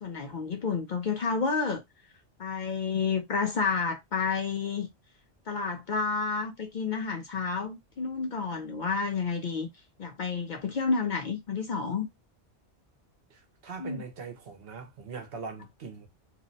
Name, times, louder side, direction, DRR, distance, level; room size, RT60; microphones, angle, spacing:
voice 1, 0.0-1.8 2.4-4.9 5.5-9.7 10.0-12.1 13.8-14.0, left 5 dB, 60° left, 0.5 m, -30 dB
voice 2, 13.3-16.1, right 5 dB, 65° right, 0.9 m, -41 dB
2.6 x 2.1 x 3.7 m
omnidirectional pair, 1.1 m